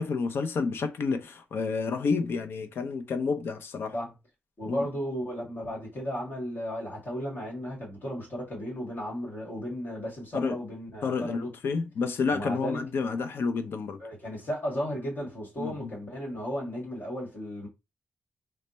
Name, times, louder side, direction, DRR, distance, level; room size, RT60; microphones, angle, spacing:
voice 1, 0.0-3.9 4.7-4.8 10.3-10.6 11.0-14.0 15.6-15.9, left 4 dB, 70° left, 0.6 m, -30 dB
voice 2, 4.6-11.8 12.3-12.9 14.0-17.7, equal, 55° left, 1.7 m, -35 dB
3.2 x 2.1 x 4.0 m
cardioid pair, 105°, 4 cm